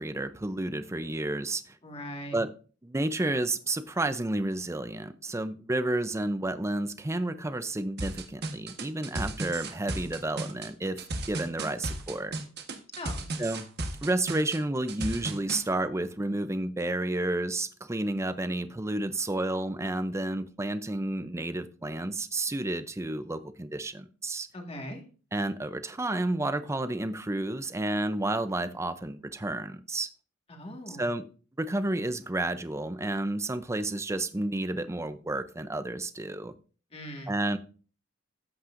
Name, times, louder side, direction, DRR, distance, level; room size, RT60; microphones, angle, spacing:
voice 1, 0.0-1.8 2.3-2.5 2.8-12.3 13.4-13.7 14.0-24.5 25.3-30.1 30.9-31.3 31.6-36.5 37.3-37.6, right 2 dB, 15° right, 12 dB, 0.5 m, -31 dB
voice 2, 1.8-2.4 12.9-13.3 24.5-25.0 30.5-31.1 36.9-37.4, left 1 dB, 30° left, 2 dB, 1.8 m, -40 dB
sound 1, 8.0-15.6, right 2 dB, 55° right, 1.4 m, -35 dB
13.5 x 8.5 x 2.6 m, 0.38 s
head